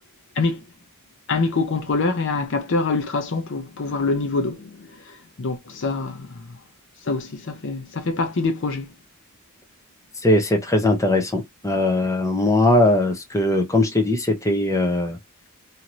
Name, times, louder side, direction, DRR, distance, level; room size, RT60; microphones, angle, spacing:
voice 1, 1.3-6.4 7.1-8.9, left 3 dB, 60° left, 0.7 m, -25 dB
voice 2, 10.2-15.2, left 1 dB, 15° left, 0.6 m, -20 dB
2.8 x 2.6 x 3.0 m
head